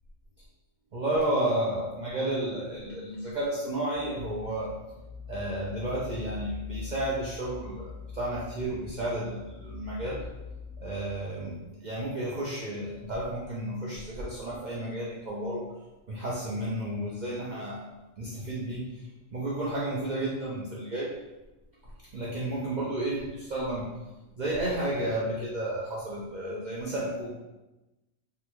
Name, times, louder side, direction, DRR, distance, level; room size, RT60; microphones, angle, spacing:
voice 1, 0.9-4.7 5.3-10.2 10.8-15.7 16.1-17.8 18.2-18.9 19.3-21.1 22.1-23.9 24.4-27.3, right 1 dB, 60° right, -7 dB, 0.4 m, -32 dB
sound 1, 3.9-11.2, left 5 dB, 60° left, 0.8 m, -43 dB
3.5 x 2.1 x 3.0 m, 1.0 s
omnidirectional pair, 1.4 m